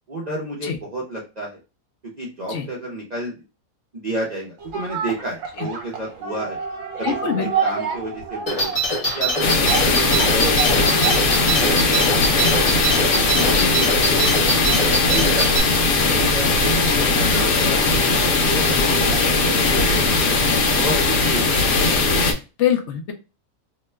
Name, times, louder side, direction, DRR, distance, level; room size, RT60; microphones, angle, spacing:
voice 1, 0.1-1.6 2.2-3.4 3.9-6.6 7.0-7.1 7.4-8.7 9.1-12.7 13.2-14.1 14.5-15.5 16.0-17.9 18.4-20.4 20.7-21.7, right 1 dB, 45° right, -4 dB, 0.6 m, -31 dB
sound 1, 4.6-19.8 20.1-20.2, right 5 dB, 65° right, 1.1 m, -31 dB
voice 2, 7.0-7.5 13.5-13.7 16.7-16.8 22.6-23.1, left 8 dB, 65° left, 4 dB, 0.8 m, -23 dB
sound 2, 8.5-15.6, right 1 dB, 30° left, 0.9 m, -23 dB
sound 3, 9.4-22.3, left 3 dB, 80° left, 1.2 m, -19 dB
2.9 x 2.2 x 3.2 m, 0.30 s
omnidirectional pair, 1.5 m